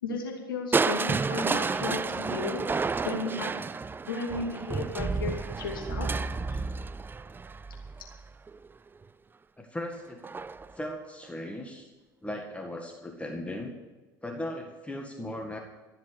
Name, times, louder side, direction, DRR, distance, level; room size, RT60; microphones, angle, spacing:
voice 1, 0.0-2.6 3.0-3.5 4.0-6.1 6.5-6.6, left 4 dB, 85° left, 1 dB, 2.5 m, -34 dB
Crushing, 0.7-8.7 10.2-10.7 11.2-11.3, right 4 dB, 20° right, 0.4 m, -31 dB
voice 2, 9.6-10.2 10.7-11.9 12.2-13.7 14.2-15.6, left 1 dB, 10° left, 2 dB, 1.8 m, -37 dB
14.0 x 7.5 x 8.4 m, 1.2 s
hypercardioid pair, 70°, 11 cm